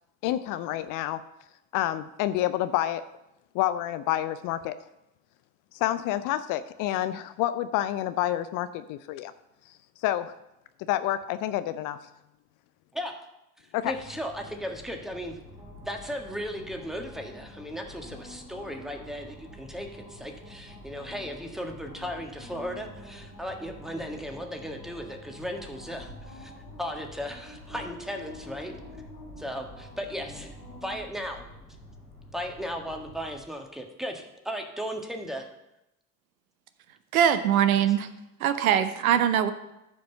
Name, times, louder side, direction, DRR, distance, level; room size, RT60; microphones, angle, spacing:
voice 1, 0.2-1.2 1.7-3.0 3.5-4.7 5.7-9.3 10.0-10.3 10.9-12.0 13.7-13.9, left 13 dB, 45° left, 12 dB, 0.6 m, -28 dB
voice 2, 13.8-15.4 15.8-26.5 26.8-28.8 29.4-30.5 30.8-31.4 32.3-35.4 37.9-38.0, equal, ahead, 3 dB, 1.6 m, -36 dB
sound 1, 13.9-33.4, left 1 dB, 90° left, 2.4 m, -46 dB
voice 3, 37.1-38.1 38.4-39.5, right 9 dB, 70° right, 11 dB, 0.8 m, -22 dB
14.0 x 5.2 x 5.7 m, 0.90 s
figure-of-eight pair, 60°, 44 cm